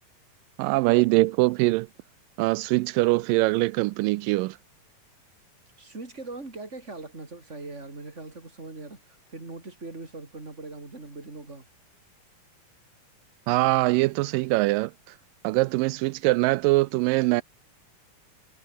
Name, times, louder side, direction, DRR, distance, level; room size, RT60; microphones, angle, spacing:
voice 1, 0.6-1.9 2.4-4.6 13.5-14.9 15.4-17.4, right 21 dB, 85° right, 2.2 m, -22 dB
voice 2, 5.8-11.6, right 3 dB, 20° right, 4.8 m, -41 dB
omnidirectional pair, 3.9 m